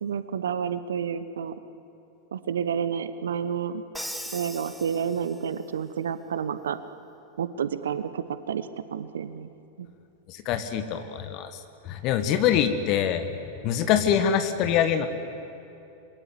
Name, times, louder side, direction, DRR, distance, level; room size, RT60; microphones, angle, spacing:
voice 1, 0.0-1.5 2.3-3.8 4.3-6.8 7.4-9.5 9.8-9.9, right 7 dB, 65° right, 13 dB, 0.9 m, -30 dB
Crash cymbal, 3.9-5.7, equal, ahead, 1.2 m, -39 dB
voice 2, 10.3-11.5 11.8-13.2 13.6-15.1, left 9 dB, 40° left, 8 dB, 1.6 m, -24 dB
28.0 x 22.0 x 8.3 m, 2.7 s
figure-of-eight pair, 90°, 0 cm